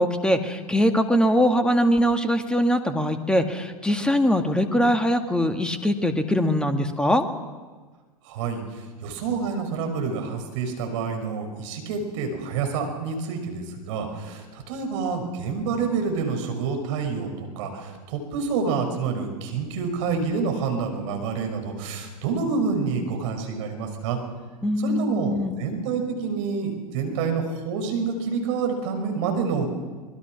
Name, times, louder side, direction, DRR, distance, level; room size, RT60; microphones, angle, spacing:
voice 1, 0.0-7.2 24.6-25.5, equal, 5° left, 6 dB, 2.0 m, -22 dB
voice 2, 8.2-24.2 24.8-29.7, right 5 dB, 55° right, 4 dB, 5.6 m, -28 dB
25.0 x 21.0 x 6.2 m, 1.4 s
figure-of-eight pair, 95°, 19 cm